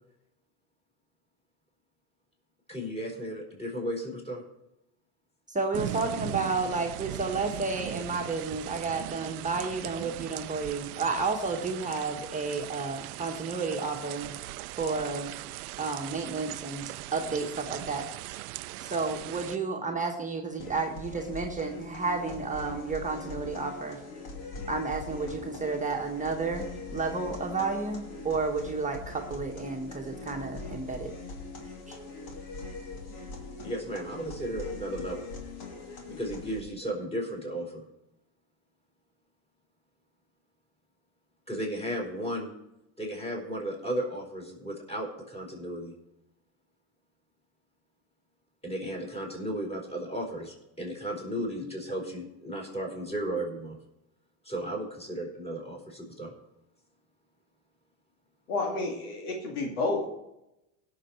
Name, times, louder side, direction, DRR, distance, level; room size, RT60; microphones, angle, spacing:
voice 1, 2.7-4.4 33.6-35.3 36.1-37.8 41.5-42.5 43.0-46.0 48.6-53.8 54.4-56.3, right 1 dB, 15° left, -1 dB, 5.0 m, -34 dB
voice 2, 5.5-14.4 14.8-15.3 15.8-18.3 18.8-24.0 24.7-31.1 31.9-32.0, right 4 dB, 15° right, 1 dB, 1.5 m, -31 dB
sound 1, 5.7-19.6, right 17 dB, 85° right, 0.5 m, -39 dB
sound 2, 20.6-36.6, left 3 dB, 55° left, 3.1 m, -41 dB
voice 3, 58.5-60.1, left 3 dB, 85° left, 1 dB, 2.6 m, -30 dB
17.5 x 6.8 x 4.4 m, 0.89 s
supercardioid pair, 90°, 43 cm